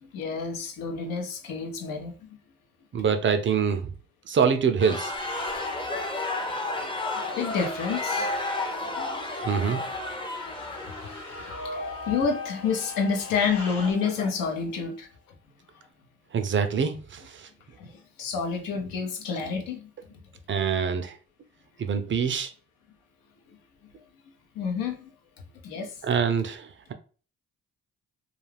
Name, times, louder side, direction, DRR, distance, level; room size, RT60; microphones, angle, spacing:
voice 1, 0.0-2.4 7.1-8.4 9.0-9.2 9.6-9.8 10.8-10.9 11.6-15.1 17.8-20.2 23.5-23.6 24.5-25.1 25.6-26.0, left 5 dB, 75° left, 0.7 m, -29 dB
voice 2, 2.9-3.8 4.3-5.1 9.4-9.8 16.3-17.2 20.5-21.1 21.8-22.5 26.0-26.9, right 6 dB, 35° right, 0.4 m, -25 dB
sound 1, 4.8-14.7, left 2 dB, 15° left, 0.6 m, -33 dB
sound 2, 5.0-13.9, left 2 dB, 60° left, 1.2 m, -45 dB
sound 3, 10.8-14.7, left 3 dB, 40° left, 0.8 m, -39 dB
2.3 x 2.3 x 3.3 m
hypercardioid pair, 55°, 34 cm